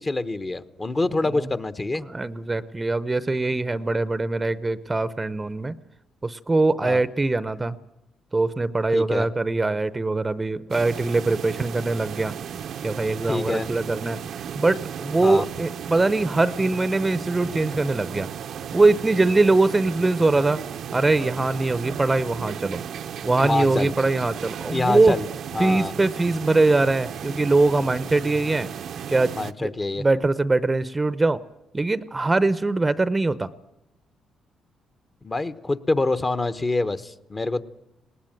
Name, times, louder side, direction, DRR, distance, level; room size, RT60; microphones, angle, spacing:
voice 1, 0.0-2.0 6.8-7.0 8.9-9.3 13.2-13.7 15.2-15.5 23.4-23.9 24.7-25.3 25.5-25.9 29.3-30.1 35.2-37.6, left 2 dB, 25° left, 13 dB, 1.0 m, -26 dB
voice 2, 2.1-5.7 6.2-7.8 8.3-12.3 12.8-14.2 14.6-18.3 18.7-20.6 20.9-22.8 23.2-25.2 25.6-28.7 29.1-29.3 29.6-29.7 30.0-31.4 31.7-33.5, right 2 dB, 20° right, 16 dB, 0.7 m, -22 dB
sound 1, 10.7-29.5, right 8 dB, 65° right, 0.7 m, -35 dB
19.5 x 19.0 x 9.1 m, 0.88 s
cardioid pair, 90°, 0 cm